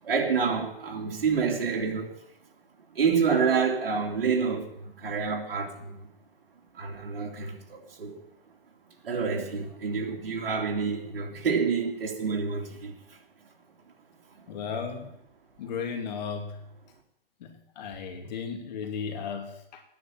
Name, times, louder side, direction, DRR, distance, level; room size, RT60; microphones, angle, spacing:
voice 1, 0.0-2.1 2.9-6.0 6.7-8.2 9.0-13.2 14.4-14.5, right 5 dB, 70° right, 3.2 m, -28 dB
voice 2, 14.5-15.2 15.6-16.6 17.4-19.8, left 6 dB, 45° left, 2.8 m, -35 dB
14.5 x 9.9 x 7.5 m
hypercardioid pair, 160°, 30 cm